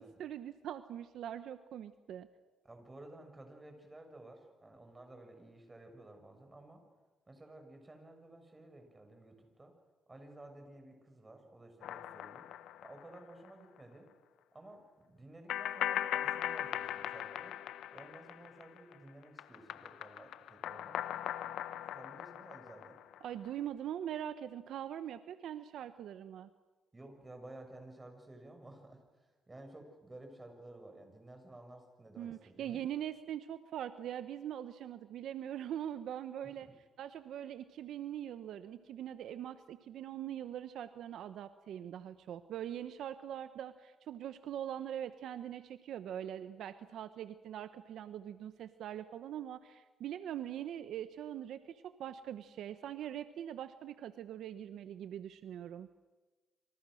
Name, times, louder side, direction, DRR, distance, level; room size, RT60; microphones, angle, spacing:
voice 1, 0.0-2.3 23.2-26.5 32.2-36.7 37.0-55.9, right 10 dB, 75° right, 11 dB, 1.0 m, -42 dB
voice 2, 2.6-6.8 7.3-9.7 10.1-12.5 12.8-14.1 14.5-17.6 17.9-21.0 21.9-23.0 26.9-32.8 36.6-36.7, right 2 dB, 20° right, 5 dB, 6.7 m, -54 dB
sound 1, 11.8-13.5 13.8-13.9 15.5-19.0 19.2-23.5, left 11 dB, 80° left, 1.0 m, -39 dB
27.5 x 27.0 x 6.5 m, 1.2 s
cardioid pair, 90°, 0 cm